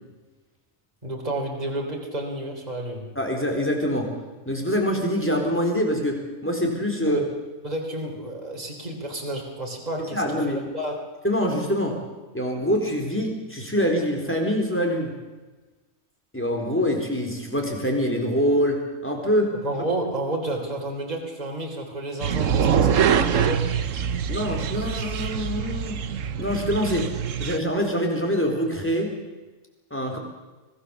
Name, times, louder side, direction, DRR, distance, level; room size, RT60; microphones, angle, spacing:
voice 1, 1.0-3.1 7.1-7.2 7.6-11.0 19.5-23.7, right 1 dB, 30° right, 0 dB, 3.6 m, -31 dB
voice 2, 3.2-4.1 4.5-7.3 10.1-10.6 11.2-12.0 12.3-15.1 16.3-19.5 24.3-26.0 26.4-27.1 27.4-29.1 29.9-30.2, equal, 10° left, 1 dB, 4.0 m, -24 dB
sound 1, 22.2-27.6, right 7 dB, 65° right, 1.3 m, -24 dB
25.5 x 18.0 x 7.1 m, 1.2 s
omnidirectional pair, 1.5 m